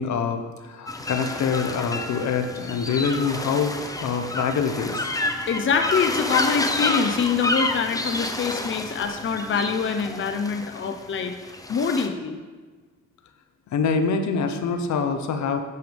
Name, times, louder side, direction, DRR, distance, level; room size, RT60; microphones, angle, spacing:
voice 1, 0.0-3.7 4.0-5.1 13.7-15.6, left 5 dB, 65° left, 7 dB, 0.9 m, -25 dB
sound 1, 0.9-12.1, left 2 dB, 10° left, 0.9 m, -29 dB
voice 2, 5.5-11.4 11.7-12.4, left 5 dB, 40° left, 6 dB, 0.8 m, -25 dB
10.5 x 9.5 x 3.5 m, 1.3 s
cardioid pair, 90°, 30 cm